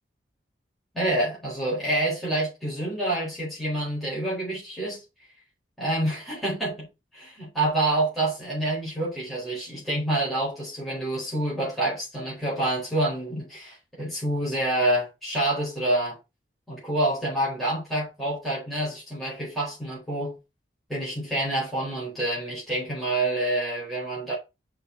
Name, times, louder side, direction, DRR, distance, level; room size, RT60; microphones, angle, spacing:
voice 1, 0.9-5.0 5.8-6.9 7.1-16.2 16.7-20.4 20.9-24.4, right 1 dB, ahead, 4.5 m, -27 dB
6.6 x 4.6 x 5.7 m
head